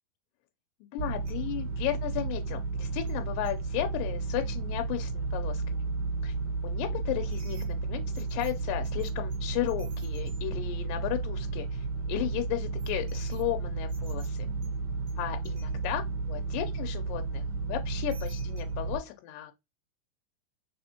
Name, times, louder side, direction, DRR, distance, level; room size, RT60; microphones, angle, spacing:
voice 1, 0.9-5.6 6.2-6.3 6.6-14.5 15.2-19.5, left 14 dB, 85° left, 2.3 m, -34 dB
sound 1, 1.0-19.0, right 3 dB, 70° right, 1.2 m, -33 dB
4.2 x 4.1 x 2.8 m
omnidirectional pair, 4.0 m